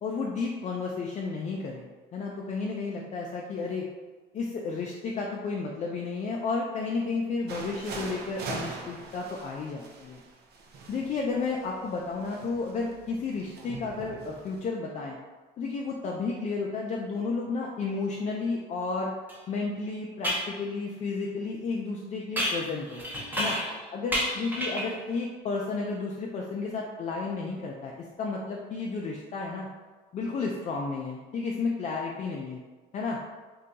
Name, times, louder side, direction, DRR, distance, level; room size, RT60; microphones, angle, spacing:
voice 1, 0.0-3.9 4.3-10.2 10.9-15.2 15.6-19.1 19.5-23.0 23.4-23.6 23.9-29.7 30.1-32.6 32.9-33.2, left 4 dB, 45° left, -2 dB, 0.4 m, -32 dB
sound 1, 7.5-14.7, right 3 dB, 70° right, 0.6 m, -42 dB
sound 2, 19.3-19.4 20.2-20.5 22.4-23.8 24.1-25.0, equal, 10° right, 0.7 m, -30 dB
2.7 x 2.2 x 3.9 m, 1.3 s
cardioid pair, 110°, 17 cm